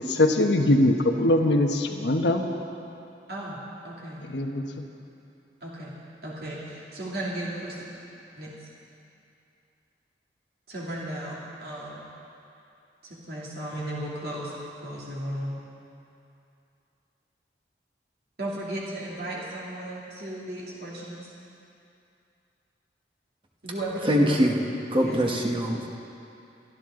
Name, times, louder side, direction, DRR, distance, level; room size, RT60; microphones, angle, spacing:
voice 1, 0.0-2.4 4.3-4.8, left 1 dB, 85° left, 4 dB, 1.1 m, -22 dB
voice 2, 3.3-4.2 5.6-5.9 6.2-7.8 8.3-8.7 10.7-12.0 13.0-15.6 18.4-21.3 23.6-24.3 25.0-25.2, right 1 dB, 60° right, -6 dB, 2.7 m, -35 dB
voice 3, 24.0-24.6 24.9-25.9, equal, 30° right, 0 dB, 1.3 m, -23 dB
24.0 x 12.0 x 3.8 m, 2.7 s
head